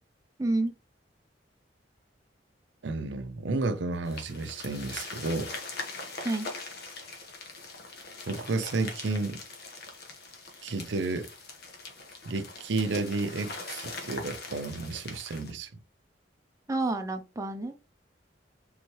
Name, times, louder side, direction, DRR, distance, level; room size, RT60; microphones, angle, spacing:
voice 1, 0.4-0.7 6.2-6.5 16.7-17.9, right 2 dB, 20° right, 0.6 m, -29 dB
voice 2, 2.8-5.5 8.3-9.4 10.6-11.3 12.3-15.8, right 3 dB, 75° right, 0.6 m, -32 dB
sound 1, 4.1-15.5, left 3 dB, 60° left, 1.2 m, -42 dB
4.6 x 3.6 x 3.0 m
head